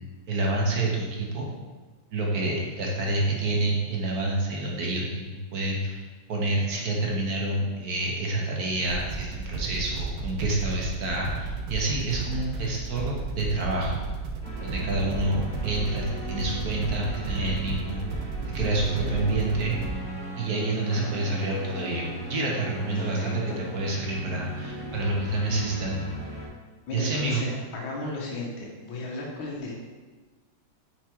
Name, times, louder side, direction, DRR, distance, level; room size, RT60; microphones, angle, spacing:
voice 1, 0.3-1.5 2.1-6.0 6.3-13.9 14.6-18.3 18.5-19.8 20.4-26.1 26.9-27.4, right 2 dB, 55° right, -2 dB, 1.3 m, -28 dB
sound 1, 8.8-19.9, right 4 dB, 90° right, 1.4 m, -33 dB
sound 2, 14.4-26.5, right 1 dB, 5° left, 1.2 m, -38 dB
voice 2, 22.9-23.6 26.9-29.7, left 2 dB, 85° left, -2 dB, 1.8 m, -35 dB
4.8 x 4.7 x 4.4 m, 1.3 s
omnidirectional pair, 2.2 m